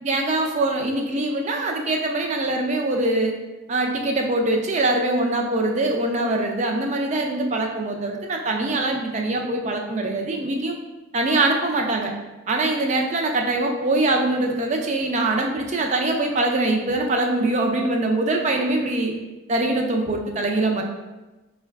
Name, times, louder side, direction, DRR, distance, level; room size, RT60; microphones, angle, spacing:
voice 1, 0.0-3.3 3.7-10.7 11.1-12.1 12.5-19.1 19.5-20.8, right 2 dB, 35° right, 2 dB, 0.4 m, -23 dB
4.6 x 2.2 x 3.4 m, 1.1 s
head